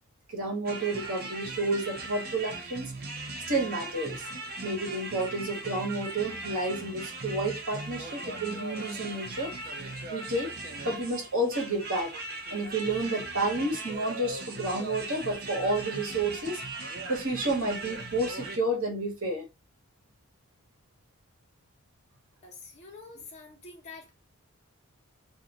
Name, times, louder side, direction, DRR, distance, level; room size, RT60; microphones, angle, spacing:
voice 1, 0.3-2.9 3.5-4.3 4.6-9.5 10.1-10.5 10.8-12.1 12.5-16.6 17.1-19.4, right 2 dB, 80° right, 1.2 m, -30 dB
sound 1, 0.7-18.6, right 2 dB, 45° right, 0.6 m, -39 dB
voice 2, 22.4-24.1, left 4 dB, 30° left, 0.9 m, -47 dB
2.5 x 2.4 x 2.9 m
head